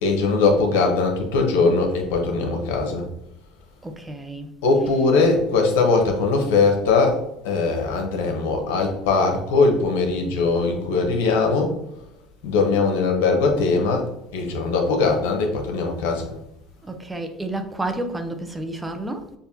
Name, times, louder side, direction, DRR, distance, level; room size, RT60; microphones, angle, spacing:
voice 1, 0.0-3.1 4.6-11.7 12.4-14.1 14.3-16.3, left 3 dB, 85° left, 1.0 m, -20 dB
voice 2, 3.8-5.1 16.8-19.3, right 2 dB, 15° right, 0.7 m, -31 dB
6.8 x 2.6 x 2.7 m
supercardioid pair, 100°, 0 cm